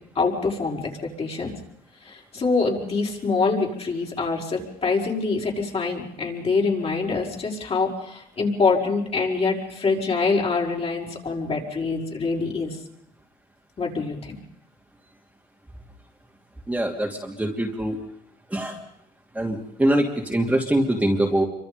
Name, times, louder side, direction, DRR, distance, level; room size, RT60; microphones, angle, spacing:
voice 1, 0.2-1.5 2.0-12.8 13.8-14.4, left 4 dB, 35° left, -1 dB, 5.7 m, -25 dB
voice 2, 16.7-18.0 18.5-18.8 19.3-21.4, right 1 dB, 10° right, 0 dB, 2.9 m, -23 dB
27.5 x 25.0 x 5.3 m, 0.75 s
cardioid pair, 110°, 17 cm